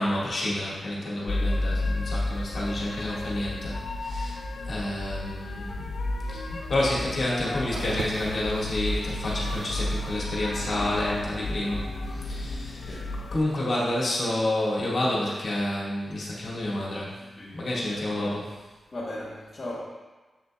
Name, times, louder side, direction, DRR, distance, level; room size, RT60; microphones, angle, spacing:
voice 1, 0.0-4.4 4.6-5.9 6.3-13.0 13.3-17.2 17.5-18.4, left 1 dB, 55° left, -6 dB, 1.6 m, -29 dB
sound 1, 1.3-13.4, left 2 dB, 80° left, 0.6 m, -32 dB
sound 2, 7.7-11.1 11.4-12.3 13.0-13.1, right 4 dB, 70° right, 0.4 m, -42 dB
voice 2, 17.4-18.4 18.9-19.8, left 1 dB, 30° left, -8 dB, 1.1 m, -38 dB
7.4 x 6.6 x 2.2 m, 1.3 s
wide cardioid pair, 155°, 0 cm